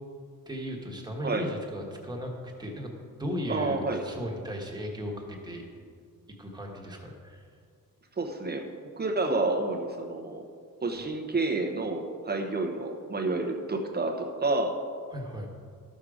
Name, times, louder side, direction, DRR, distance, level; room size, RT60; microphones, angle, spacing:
voice 1, 0.5-2.9 3.2-5.6 6.4-7.5 15.1-15.5, equal, 10° right, 0 dB, 1.4 m, -36 dB
voice 2, 3.5-4.0 8.2-8.7 9.0-10.5 10.8-14.8, right 2 dB, 30° right, 3 dB, 0.8 m, -29 dB
13.0 x 6.4 x 4.9 m, 2.2 s
wide cardioid pair, 160°, 35 cm